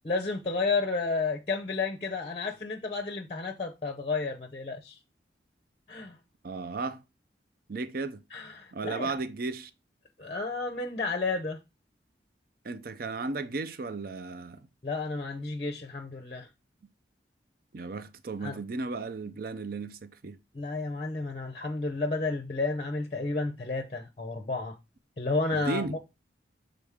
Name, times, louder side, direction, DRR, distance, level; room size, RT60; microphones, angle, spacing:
voice 1, 0.0-5.0 5.9-6.2 8.3-9.1 10.2-11.6 14.8-16.5 18.4-18.6 20.5-24.8 25.2-26.0, left 3 dB, 35° left, 0.6 m, -31 dB
voice 2, 6.4-7.0 7.7-8.2 8.7-9.7 12.6-14.7 17.7-20.4 25.7-26.0, right 3 dB, 55° right, 0.5 m, -35 dB
7.0 x 3.8 x 3.5 m
head